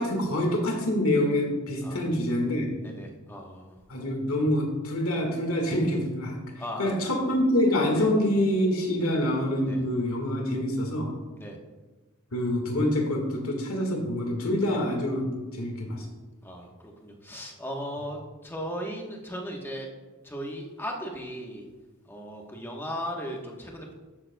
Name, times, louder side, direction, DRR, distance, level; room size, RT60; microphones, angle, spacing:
voice 1, 0.0-2.7 3.9-6.4 6.8-11.1 12.3-16.0, left 1 dB, 85° left, 2 dB, 1.7 m, -26 dB
voice 2, 2.8-3.8 6.6-6.9 7.9-8.1 9.0-9.2 9.6-9.8 11.4-11.6 16.4-19.9 20.2-21.6 22.1-23.9, equal, 10° left, 0 dB, 1.1 m, -37 dB
12.5 x 7.3 x 2.3 m, 1.2 s
head